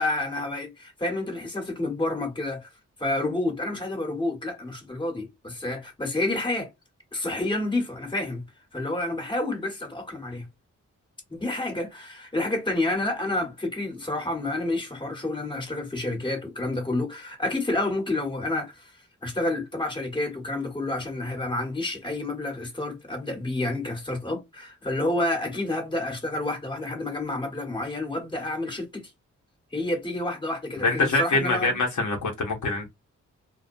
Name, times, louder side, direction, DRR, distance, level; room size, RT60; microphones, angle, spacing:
voice 1, 0.0-2.7 3.0-6.7 7.1-8.4 8.7-10.5 11.3-18.9 19.2-29.1 29.7-31.8, left 2 dB, 15° left, 1.2 m, -29 dB
voice 2, 30.8-32.9, left 2 dB, 65° left, 0.9 m, -24 dB
2.2 x 2.1 x 2.6 m
cardioid pair, 50°, 31 cm